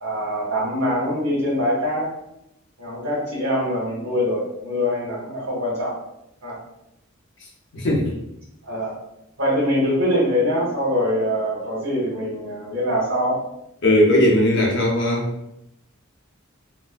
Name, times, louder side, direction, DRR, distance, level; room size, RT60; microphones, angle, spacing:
voice 1, 0.0-2.1 2.8-5.9 6.4-6.6 8.6-8.9 9.4-13.4, equal, 60° right, -7 dB, 1.1 m, -23 dB
voice 2, 7.7-8.1 13.8-15.3, left 1 dB, 55° left, -2 dB, 0.8 m, -18 dB
4.2 x 2.1 x 2.5 m, 0.83 s
head